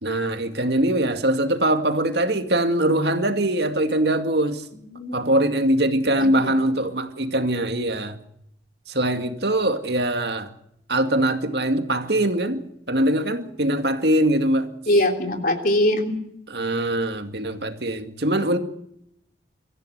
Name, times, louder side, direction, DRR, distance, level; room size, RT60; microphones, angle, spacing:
voice 1, 0.0-4.6 5.1-8.2 8.9-10.5 10.9-14.7 16.5-18.6, right 1 dB, 60° right, 2.2 m, -22 dB
voice 2, 4.9-5.3 6.2-6.5 14.9-16.2, left 1 dB, 50° left, 3.3 m, -22 dB
24.5 x 15.0 x 8.0 m
head